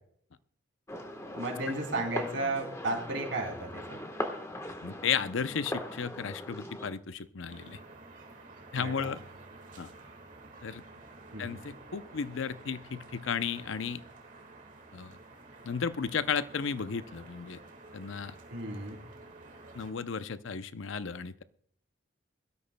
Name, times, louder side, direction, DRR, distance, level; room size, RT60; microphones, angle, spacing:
sound 1, 0.9-6.9, left 1 dB, 15° left, 1.2 m, -40 dB
voice 1, 1.3-4.0 8.7-9.1 11.3-11.6 18.5-19.0, right 2 dB, 70° right, 2 dB, 3.2 m, -34 dB
voice 2, 4.8-7.8 8.7-9.2 9.8-9.9 10.6-10.8 11.4-14.0 14.9-15.2 15.6-17.6 17.9-18.3 19.7-21.4, left 6 dB, 70° left, 13 dB, 0.6 m, -34 dB
sound 2, 7.5-19.9, right 2 dB, 40° right, 1.7 m, -51 dB
22.0 x 12.5 x 2.2 m, 0.65 s
head